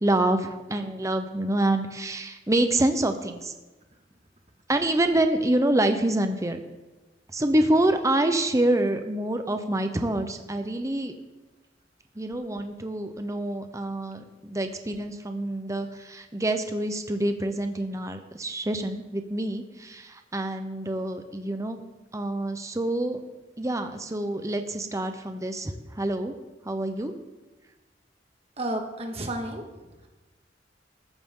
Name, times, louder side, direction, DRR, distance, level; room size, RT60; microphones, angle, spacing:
voice 1, 0.0-3.5 4.7-6.6 7.3-11.1 12.2-21.8 22.1-23.2 23.6-26.3 26.6-27.1, right 1 dB, 20° right, 7 dB, 0.8 m, -26 dB
voice 2, 28.6-29.6, right 1 dB, 35° right, 3 dB, 1.8 m, -31 dB
14.0 x 13.5 x 3.8 m, 1.1 s
head